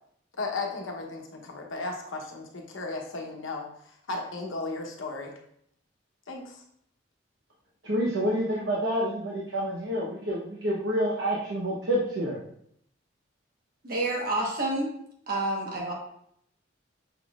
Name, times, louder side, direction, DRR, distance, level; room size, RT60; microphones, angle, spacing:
voice 1, 0.4-5.3 6.3-6.6, left 3 dB, 85° left, 1 dB, 0.9 m, -35 dB
voice 2, 7.8-12.4, equal, 65° right, -5 dB, 0.9 m, -28 dB
voice 3, 13.8-14.9 15.3-15.9, right 2 dB, 45° right, -1 dB, 1.1 m, -28 dB
5.7 x 3.9 x 2.4 m, 0.70 s
head